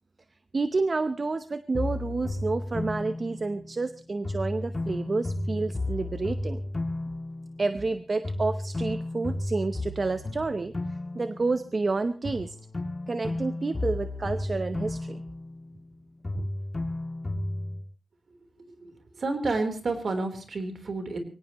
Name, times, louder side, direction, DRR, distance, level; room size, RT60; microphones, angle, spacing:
voice 1, 0.5-6.6 7.6-10.7 11.1-12.6 13.1-15.2 16.3-16.5, right 3 dB, 40° right, 11 dB, 0.8 m, -29 dB
sound 1, 1.7-3.9 4.2-8.0 8.2-11.9 12.2-16.0 16.2-17.8, left 2 dB, 30° left, 2.6 m, -33 dB
voice 2, 18.6-21.2, right 3 dB, 60° right, 6 dB, 3.8 m, -30 dB
23.0 x 17.5 x 3.1 m, 0.33 s
wide cardioid pair, 100°, 0 cm